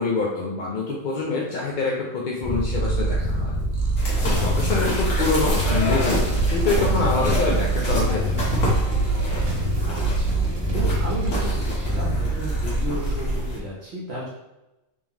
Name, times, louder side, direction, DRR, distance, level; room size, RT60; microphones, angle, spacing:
voice 1, 0.0-3.5 4.2-6.2 6.5-8.5, left 3 dB, 60° left, -3 dB, 0.5 m, -26 dB
Purr, 2.4-12.8, right 1 dB, 25° right, 0.5 m, -25 dB
sound 1, 4.0-13.6, equal, 75° left, 1.6 m, -28 dB
voice 2, 4.5-4.8 9.8-14.3, equal, 55° right, -5 dB, 1.0 m, -34 dB
sound 2, 5.4-11.3, right 4 dB, 75° right, 1.2 m, -29 dB
3.6 x 3.4 x 3.0 m, 0.98 s
omnidirectional pair, 1.4 m